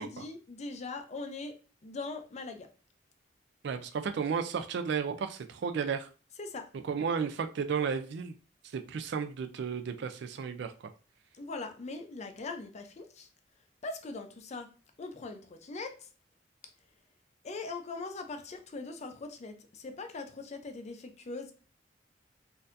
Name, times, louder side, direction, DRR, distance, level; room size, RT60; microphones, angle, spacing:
voice 1, 0.0-1.6 1.8-2.7 6.4-6.7 11.4-13.3 13.8-14.7 15.0-16.1 17.4-21.5, left 3 dB, 40° left, 0.5 m, -41 dB
voice 2, 3.6-6.1 6.8-8.3 8.7-10.7, right 6 dB, 65° right, 0.4 m, -33 dB
4.2 x 2.6 x 2.5 m
head